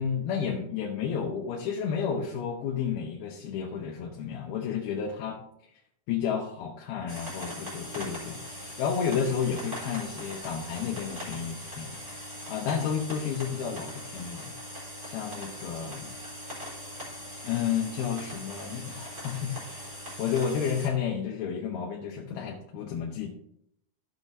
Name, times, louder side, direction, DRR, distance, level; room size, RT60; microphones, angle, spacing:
voice 1, 0.0-5.4 6.1-12.0 12.5-14.5 15.0-16.1 17.4-19.9 20.2-23.3, left 7 dB, 80° left, 0 dB, 2.9 m, -31 dB
sound 1, 7.1-20.9, equal, 20° right, 4.1 m, -41 dB
14.0 x 7.2 x 2.7 m, 0.74 s
omnidirectional pair, 4.4 m